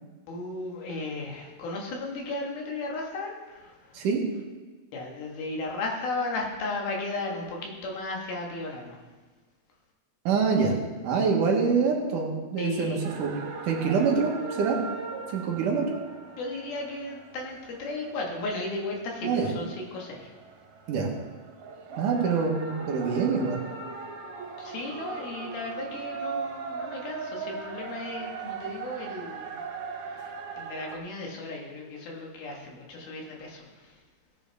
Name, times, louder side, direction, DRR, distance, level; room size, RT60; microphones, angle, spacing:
voice 1, 0.3-4.0 4.9-9.0 12.6-13.0 16.4-20.3 24.6-29.6 30.0-34.0, left 2 dB, 80° left, -1 dB, 3.6 m, -35 dB
voice 2, 10.3-10.8 11.0-13.3 13.6-14.8 15.3-16.0 19.2-19.5 20.9-21.1 22.0-23.6, right 5 dB, 65° right, 0 dB, 2.6 m, -25 dB
sound 1, 13.0-31.0, right 5 dB, 85° right, 3.1 m, -40 dB
17.0 x 8.9 x 3.5 m, 1.4 s
omnidirectional pair, 4.3 m